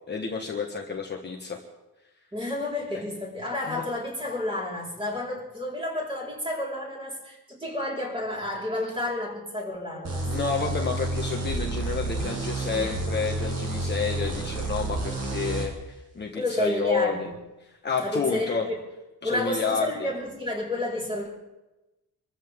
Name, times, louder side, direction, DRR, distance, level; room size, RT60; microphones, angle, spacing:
voice 1, 0.1-1.6 3.7-3.8 10.2-17.3 17.8-18.6 19.2-20.1, left 5 dB, 30° left, 0 dB, 1.4 m, -30 dB
voice 2, 2.3-10.3 16.3-17.3 18.0-18.7 19.2-21.3, left 1 dB, 15° right, -3 dB, 4.5 m, -30 dB
sound 1, 10.0-15.7, right 2 dB, 60° right, 5.9 m, -30 dB
26.0 x 14.0 x 3.7 m, 1.0 s
wide cardioid pair, 165°, 37 cm